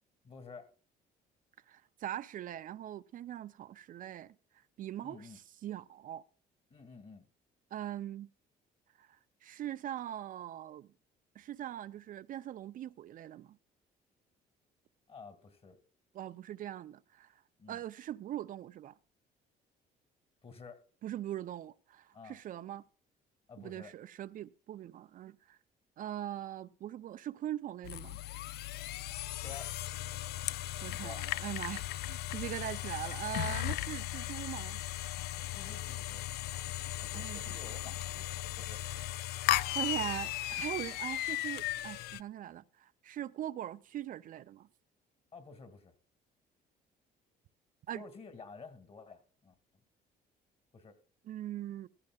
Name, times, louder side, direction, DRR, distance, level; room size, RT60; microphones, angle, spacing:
voice 1, 0.2-0.7 5.0-5.4 6.7-7.3 15.1-15.8 17.6-17.8 20.4-20.8 22.1-22.4 23.5-23.9 29.4-29.7 30.9-31.2 35.5-36.2 37.0-38.8 45.3-45.9 48.0-49.5 50.7-51.0, left 4 dB, 35° left, 2.1 m, -51 dB
voice 2, 1.7-4.3 4.8-5.3 5.6-6.2 7.7-8.3 9.0-10.9 11.4-13.6 16.1-17.4 17.7-18.9 21.0-22.8 23.6-25.6 26.0-28.2 30.8-34.8 37.1-37.5 38.7-38.8 39.7-44.7 47.9-48.0 51.3-51.9, right 11 dB, 55° right, 0.5 m, -41 dB
sound 1, 27.8-42.2, left 15 dB, 70° left, 0.4 m, -37 dB
15.5 x 14.0 x 2.3 m
cardioid pair, 110°, 17 cm